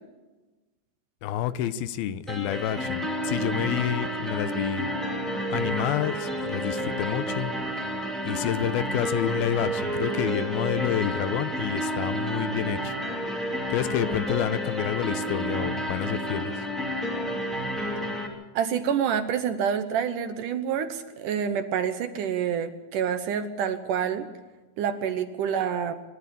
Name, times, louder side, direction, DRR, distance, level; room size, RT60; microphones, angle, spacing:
voice 1, 1.2-4.9 5.5-7.5 8.3-13.0 13.7-16.6, left 10 dB, 80° left, 13 dB, 2.6 m, -29 dB
sound 1, 2.3-18.3, equal, ahead, 2.4 m, -30 dB
voice 2, 18.5-24.3 24.8-25.9, right 8 dB, 70° right, 9 dB, 2.2 m, -27 dB
27.0 x 12.5 x 8.6 m, 1.2 s
omnidirectional pair, 4.4 m